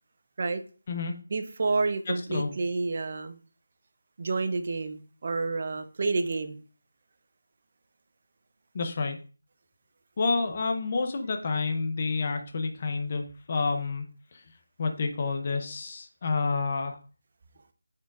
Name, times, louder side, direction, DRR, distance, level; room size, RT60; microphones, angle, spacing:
voice 1, 1.3-3.4 4.2-6.6, right 3 dB, 35° right, 9 dB, 0.6 m, -29 dB
voice 2, 8.7-9.2 10.2-14.1 14.8-17.0, left 4 dB, 25° left, 5 dB, 0.6 m, -29 dB
8.9 x 4.5 x 2.4 m, 0.39 s
figure-of-eight pair, 175°, 0 cm